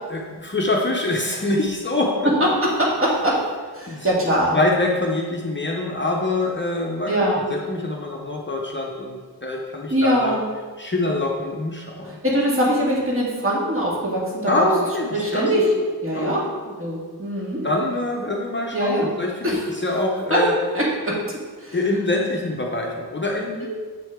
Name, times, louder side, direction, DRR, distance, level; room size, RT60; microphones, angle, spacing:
voice 1, 0.1-2.3 3.9-4.1 4.5-7.1 7.5-10.4 10.8-12.2 14.5-15.4 16.1-16.3 16.7-16.8 17.6-20.5 21.7-23.7, left 2 dB, 30° left, -1 dB, 0.7 m, -24 dB
voice 2, 2.4-3.5 3.7-4.8 7.1-7.5 9.9-10.4 12.0-14.5 15.1-15.6 16.0-16.5 16.8-17.7 18.7-19.1 19.4-19.6 20.3-20.4 20.7-21.2 21.6-21.8 23.6-23.7, equal, 35° right, -5 dB, 1.9 m, -22 dB
7.6 x 5.9 x 3.6 m, 1.5 s
wide cardioid pair, 160°, 40 cm